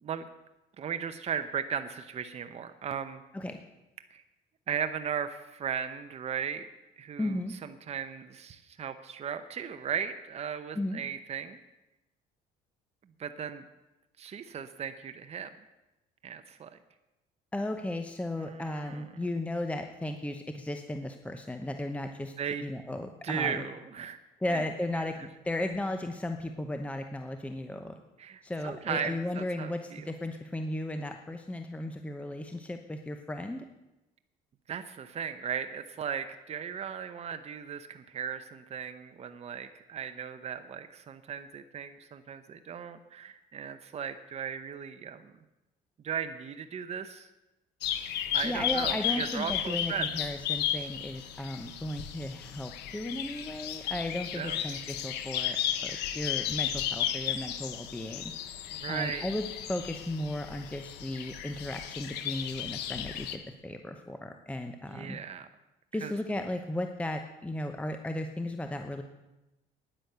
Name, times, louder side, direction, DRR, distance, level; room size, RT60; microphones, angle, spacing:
voice 1, 0.8-3.2 4.1-4.2 4.7-6.7 7.0-11.6 13.2-13.6 14.2-15.5 16.2-16.7 18.4-19.0 22.4-22.6 23.2-24.2 24.5-24.6 28.2-30.0 34.7-45.3 46.0-47.3 48.3-50.1 54.3-54.6 58.7-59.3 64.9-65.5 66.0-66.1, right 7 dB, 40° right, 9 dB, 0.8 m, -37 dB
voice 2, 7.2-7.5 10.7-11.0 17.5-22.3 22.6-23.6 24.4-28.0 28.4-33.6 48.4-58.2 58.9-65.2 65.9-69.0, left 1 dB, 10° left, 6 dB, 0.9 m, -35 dB
sound 1, 47.8-63.4, left 10 dB, 85° left, 1.2 m, -34 dB
10.0 x 10.0 x 8.0 m, 1.0 s
cardioid pair, 110°, 17 cm